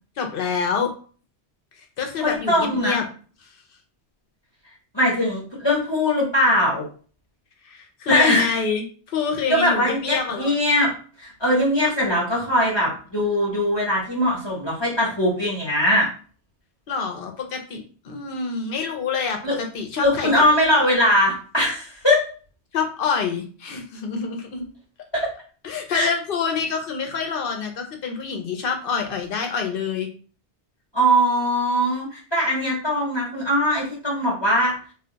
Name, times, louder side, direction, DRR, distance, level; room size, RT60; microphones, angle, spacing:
voice 1, 0.2-0.9 2.0-3.1 7.6-10.5 16.9-17.8 18.0-20.4 22.7-24.7 25.6-30.1, left 5 dB, 60° left, 4 dB, 0.8 m, -27 dB
voice 2, 2.2-3.0 4.9-6.8 8.1-8.5 9.5-10.9 11.2-16.1 19.4-19.6 20.0-22.2 25.1-25.3 25.9-26.1 30.9-34.7, left 1 dB, 25° left, -4 dB, 0.8 m, -21 dB
2.4 x 2.2 x 3.8 m, 0.40 s
omnidirectional pair, 1.2 m